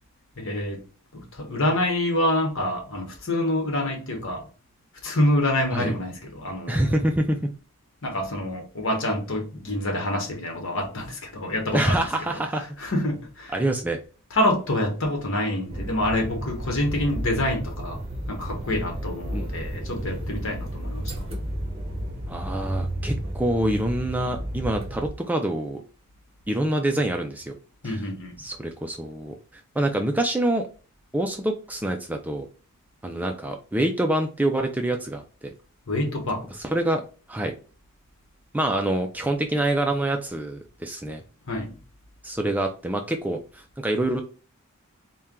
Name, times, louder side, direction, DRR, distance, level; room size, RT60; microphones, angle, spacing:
voice 1, 0.4-0.8 1.1-4.5 5.0-6.9 8.0-12.0 12.8-13.5 14.3-18.0 18.3-21.2 27.8-28.3 35.9-36.4 41.5-41.8, left 1 dB, 60° left, 1.2 m, -26 dB
voice 2, 6.7-7.5 11.7-12.7 13.5-14.0 19.3-19.7 22.3-25.8 26.5-27.5 27.8-28.0 28.4-30.7 31.1-32.5 33.0-35.5 36.5-37.0 37.3-37.5 38.5-41.2 42.2-44.2, right 1 dB, 5° right, 0.3 m, -26 dB
sound 1, 15.7-25.1, right 1 dB, 25° right, 0.7 m, -32 dB
4.3 x 2.2 x 3.6 m
head